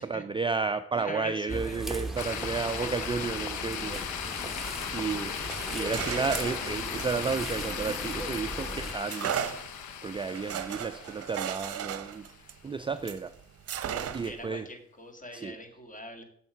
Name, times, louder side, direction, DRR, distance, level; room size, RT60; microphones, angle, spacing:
voice 1, 0.0-4.3 4.9-9.4 10.0-12.3 12.6-13.3 14.1-14.7 15.3-15.6, right 5 dB, 15° right, 10 dB, 0.4 m, -32 dB
voice 2, 0.9-1.9 6.6-7.1 14.1-16.2, left 1 dB, 25° left, 5 dB, 2.0 m, -43 dB
sound 1, 1.5-8.9, right 2 dB, ahead, 1.2 m, -38 dB
sound 2, 2.2-12.4, left 8 dB, 70° left, 0.8 m, -37 dB
sound 3, 5.4-8.4 9.1-13.2 13.7-14.5, right 9 dB, 55° right, 0.8 m, -36 dB
7.0 x 6.6 x 5.9 m, 0.66 s
cardioid pair, 90°, 30 cm